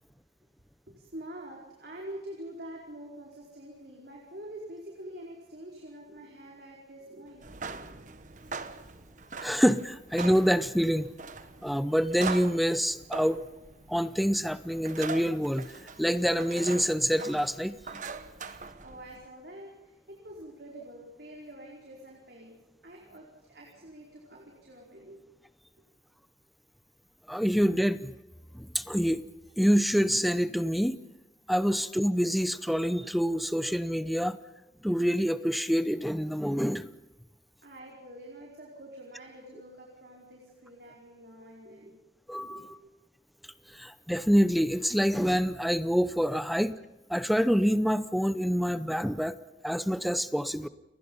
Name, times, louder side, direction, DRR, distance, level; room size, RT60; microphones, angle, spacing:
voice 1, 0.9-8.2 18.4-22.6 22.8-25.2 37.6-42.0 42.4-42.9, right 1 dB, 65° right, -2 dB, 4.8 m, -46 dB
sound 1, 7.4-19.3, right 4 dB, 45° right, 1.2 m, -42 dB
voice 2, 9.4-11.1 11.6-13.4 13.9-15.7 16.0-17.7 27.3-28.1 28.5-29.3 29.6-31.0 31.5-34.4 34.8-36.9 42.3-42.6 43.7-46.7 47.1-49.4 49.6-50.7, equal, ahead, 14 dB, 0.7 m, -26 dB
29.5 x 20.5 x 5.5 m, 1.0 s
head